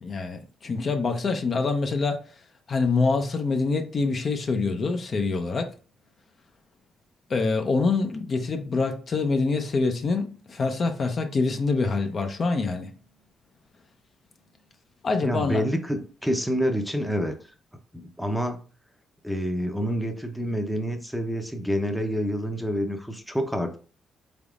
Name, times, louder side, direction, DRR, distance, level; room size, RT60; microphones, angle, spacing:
voice 1, 0.0-2.2 2.7-5.7 7.3-12.9 15.0-15.6, left 4 dB, 45° left, 0.5 m, -25 dB
voice 2, 15.2-17.3 17.9-18.6 19.2-23.8, equal, ahead, 0.6 m, -27 dB
3.9 x 3.4 x 2.4 m
cardioid pair, 90°, 0 cm